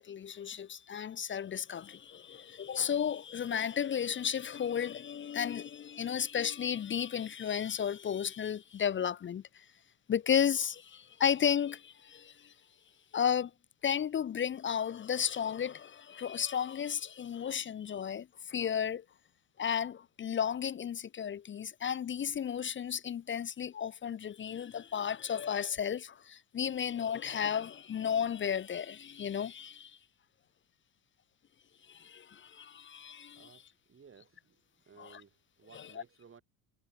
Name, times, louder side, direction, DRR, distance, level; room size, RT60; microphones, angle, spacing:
voice 1, 0.0-9.6 10.1-12.5 13.1-13.5 13.8-19.0 19.6-30.0 31.9-33.5 35.0-35.2 35.7-36.0, left 8 dB, 25° left, 0.6 m, -33 dB
voice 2, 33.3-34.6 34.9-36.4, right 6 dB, 30° right, 4.7 m, -58 dB
supercardioid pair, 90°, 45 cm